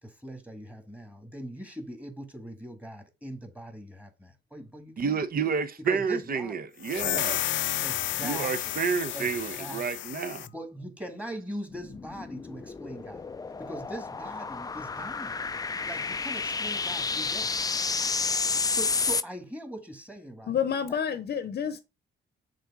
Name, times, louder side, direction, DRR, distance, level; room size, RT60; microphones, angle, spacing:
voice 1, 0.0-5.2 5.8-6.6 7.8-8.8 9.1-9.3 9.6-9.8 10.5-13.3 13.6-15.4 15.7-17.5 18.7-20.6 20.9-21.0, right 1 dB, 5° right, 2.0 m, -41 dB
voice 2, 5.0-7.6 8.2-10.5, right 6 dB, 50° right, 1.0 m, -30 dB
sound 1, 6.8-10.5, left 13 dB, 75° left, 0.5 m, -31 dB
sound 2, 11.7-19.2, left 4 dB, 20° left, 0.4 m, -31 dB
voice 3, 20.5-21.8, left 8 dB, 50° left, 0.8 m, -29 dB
6.6 x 3.9 x 4.8 m
cardioid pair, 90°, 20 cm